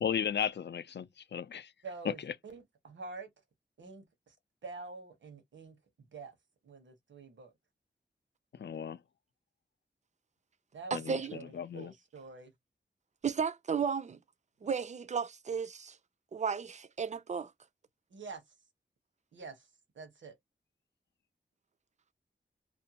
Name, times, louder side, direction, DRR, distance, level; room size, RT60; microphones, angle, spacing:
voice 1, 0.0-1.7 2.2-2.3 8.6-9.0 10.9-11.9, left 8 dB, 70° left, 0.4 m, -35 dB
voice 2, 1.8-3.3 3.8-4.3 4.6-5.8 6.1-6.4 6.6-7.5 10.7-12.5 18.1-18.4 19.3-19.7 19.9-20.4, right 4 dB, 90° right, 0.9 m, -47 dB
voice 3, 10.9-11.3 13.2-14.2 14.6-16.0 16.3-17.5, right 6 dB, 40° right, 0.4 m, -34 dB
2.5 x 2.1 x 2.8 m
cardioid pair, 50°, 19 cm